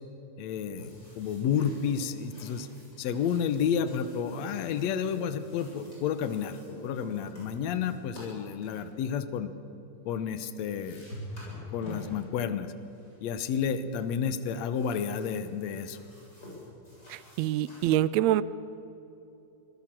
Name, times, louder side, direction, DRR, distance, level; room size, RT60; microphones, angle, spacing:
voice 1, 0.4-2.7 3.0-9.5 10.1-11.1 11.7-12.7 13.2-16.0, left 7 dB, 70° left, 11 dB, 2.2 m, -31 dB
sound 1, 0.8-8.8 10.2-10.3 10.6-12.3 12.9-13.2 13.9-17.9, left 1 dB, 35° left, 8.7 m, -47 dB
voice 2, 17.1-18.4, right 13 dB, 75° right, 16 dB, 1.8 m, -25 dB
25.0 x 19.0 x 7.5 m, 2.9 s
omnidirectional pair, 3.3 m